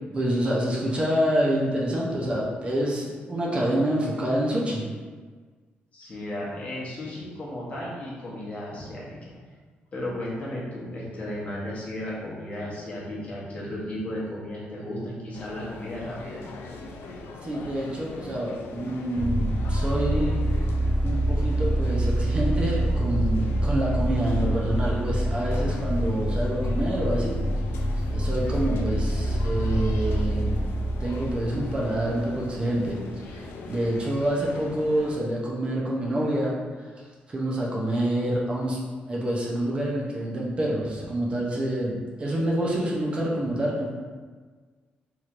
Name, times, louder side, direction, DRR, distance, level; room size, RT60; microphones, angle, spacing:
voice 1, 0.1-4.9 17.4-20.4 21.0-27.4 28.1-30.7 31.0-36.6 37.3-38.8 39.1-43.9, right 1 dB, 30° right, -4 dB, 0.5 m, -27 dB
voice 2, 5.9-9.3 9.9-16.4 18.2-18.3, left 1 dB, 35° left, -6 dB, 0.9 m, -34 dB
sound 1, 15.3-35.2, left 2 dB, 80° left, 0.3 m, -41 dB
sound 2, 19.2-32.6, right 1 dB, 20° left, 0.5 m, -26 dB
3.0 x 2.9 x 2.4 m, 1.5 s
cardioid pair, 125°, 4 cm